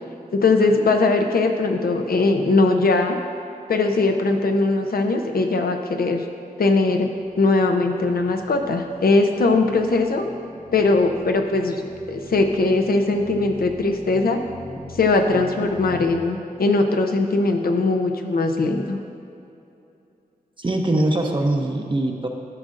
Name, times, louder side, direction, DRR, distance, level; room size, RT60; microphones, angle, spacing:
voice 1, 0.3-3.2 3.7-6.2 6.6-7.1 7.4-10.2 10.7-11.8 12.1-14.4 15.0-19.0, left 3 dB, 75° left, 4 dB, 0.7 m, -20 dB
sound 1, 7.1-16.2, left 1 dB, 10° left, 1.1 m, -42 dB
voice 2, 20.6-22.3, right 1 dB, 30° right, 2 dB, 0.7 m, -22 dB
13.0 x 6.3 x 2.5 m, 2.8 s
wide cardioid pair, 70°, 16 cm